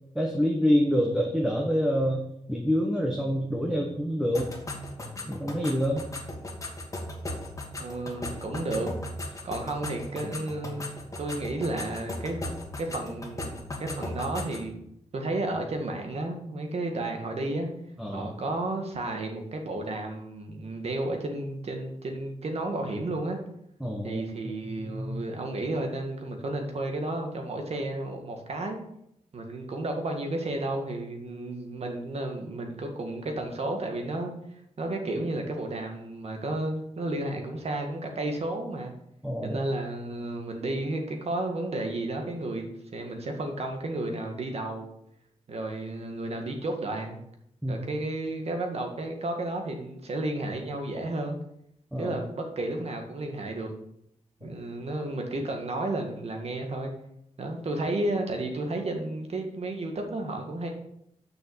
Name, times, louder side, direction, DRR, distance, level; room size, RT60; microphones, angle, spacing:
voice 1, 0.1-4.5 5.2-6.0 18.0-18.3 23.8-24.2 24.7-25.2 39.2-39.6 47.6-47.9 51.9-52.1 54.4-54.5, equal, 5° right, 0 dB, 1.1 m, -27 dB
sound 1, 4.3-14.7, left 1 dB, 25° left, 1.9 m, -37 dB
voice 2, 7.8-8.9 9.4-10.9 11.2-12.4 12.8-13.5 13.8-14.8 15.1-17.7 18.1-23.4 24.0-28.8 29.3-34.3 34.8-38.9 39.4-44.9 45.5-47.2 47.7-51.4 52.0-53.7 54.4-56.9 57.4-60.7, right 2 dB, 60° right, 3 dB, 1.9 m, -32 dB
6.7 x 6.1 x 7.1 m, 0.76 s
wide cardioid pair, 110°, 12 cm